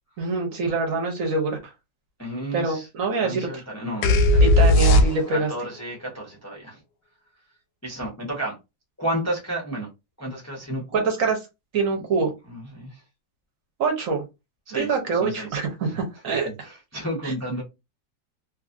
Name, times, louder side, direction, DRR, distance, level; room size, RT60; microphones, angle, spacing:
voice 1, 0.2-1.6 2.5-3.6 4.4-5.5 10.9-11.4 11.7-12.3 13.8-14.2 14.7-16.5 17.2-17.3, right 4 dB, 60° right, 0.9 m, -25 dB
voice 2, 2.2-2.9 3.2-4.5 5.3-6.8 7.8-8.6 9.0-9.9 10.2-11.1 12.0-12.1 12.5-13.0 14.7-14.9 15.2-16.0 16.2-17.6, right 1 dB, 25° left, 0.3 m, -32 dB
sound 1, 4.0-5.6, left 1 dB, 70° left, 1.0 m, -16 dB
3.0 x 2.5 x 2.5 m
omnidirectional pair, 1.9 m